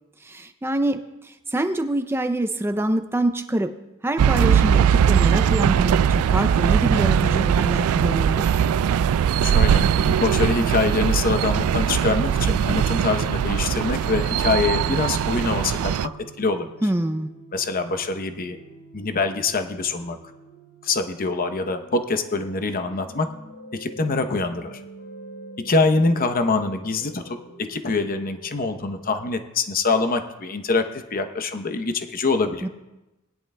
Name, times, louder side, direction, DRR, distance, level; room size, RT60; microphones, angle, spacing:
voice 1, 0.2-3.7 4.0-8.5 16.8-17.3 32.6-32.7, right 1 dB, 10° right, 8 dB, 0.4 m, -25 dB
sound 1, 4.2-16.1, right 8 dB, 85° right, 0.3 m, -20 dB
sound 2, 9.4-29.3, right 1 dB, 85° left, 3.4 m, -45 dB
voice 2, 9.4-15.9 16.4-16.7 17.5-18.6 18.9-20.2 20.8-23.3 23.7-24.8 25.6-32.7, left 3 dB, 40° left, 8 dB, 0.8 m, -24 dB
20.5 x 10.5 x 2.2 m, 1.0 s
head